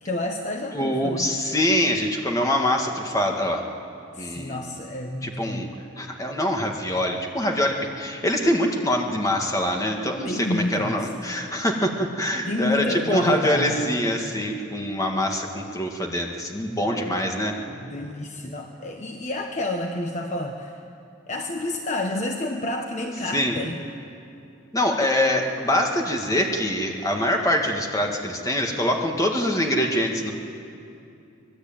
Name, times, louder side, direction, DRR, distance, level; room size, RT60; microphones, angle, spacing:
voice 1, 0.0-1.3 4.1-5.7 10.2-11.1 12.5-13.8 16.9-17.0 17.7-20.8 21.3-23.8, left 1 dB, 35° left, 3 dB, 1.2 m, -29 dB
voice 2, 0.7-3.6 4.2-4.6 5.2-5.7 6.0-17.6 23.3-23.6 24.7-30.3, left 1 dB, 15° left, 1 dB, 2.1 m, -24 dB
25.0 x 20.0 x 9.1 m, 2.7 s
head